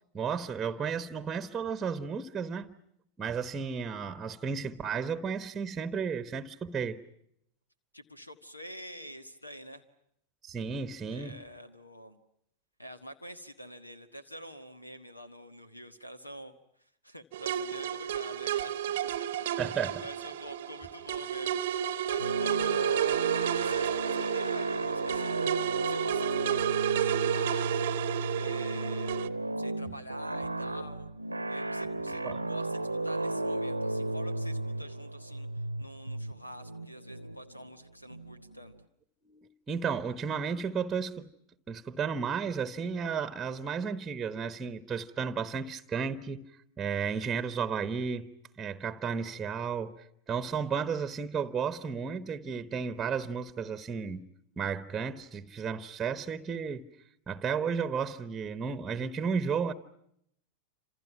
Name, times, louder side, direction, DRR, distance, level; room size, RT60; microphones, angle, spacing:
voice 1, 0.1-2.8 3.2-7.0 10.4-11.4 19.6-20.0 32.2-32.4 39.2-41.3 41.7-46.4 46.8-48.3 48.6-49.9 50.3-54.3 54.6-56.8 57.3-59.7, right 6 dB, 15° right, 1.2 m, -33 dB
voice 2, 7.9-9.8 11.1-12.2 12.8-16.5 16.8-18.7 19.6-25.4 25.7-27.9 28.3-29.3 29.6-31.1 31.5-32.2 32.5-38.7, equal, 85° left, 1.5 m, -46 dB
sound 1, 17.3-29.3, right 11 dB, 55° right, 0.9 m, -31 dB
sound 2, 22.2-38.7, right 1 dB, 85° right, 0.9 m, -34 dB
29.0 x 27.5 x 5.8 m
figure-of-eight pair, 90°, 0 cm